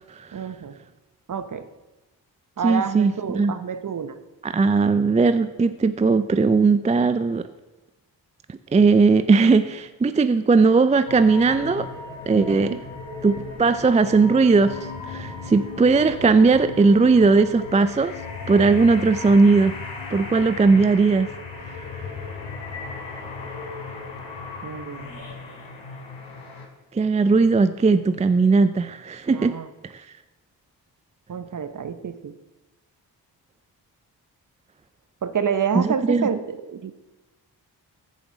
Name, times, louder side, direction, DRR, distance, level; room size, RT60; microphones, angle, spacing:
voice 1, 0.3-0.8 1.3-1.7 2.6-4.1 12.3-12.8 24.6-25.1 29.3-29.7 31.3-32.3 35.2-36.9, right 7 dB, 45° right, 10 dB, 0.9 m, -28 dB
voice 2, 2.6-3.5 4.4-7.5 8.5-11.9 12.3-12.7 13.2-18.2 18.5-19.8 20.1-21.3 21.6-22.1 26.9-29.5 29.8-30.0 35.7-36.3, right 4 dB, 15° right, 11 dB, 0.4 m, -18 dB
sound 1, 11.1-26.7, left 4 dB, 80° left, 2.4 m, -36 dB
15.0 x 5.1 x 3.9 m, 1.1 s
supercardioid pair, 40°, 44 cm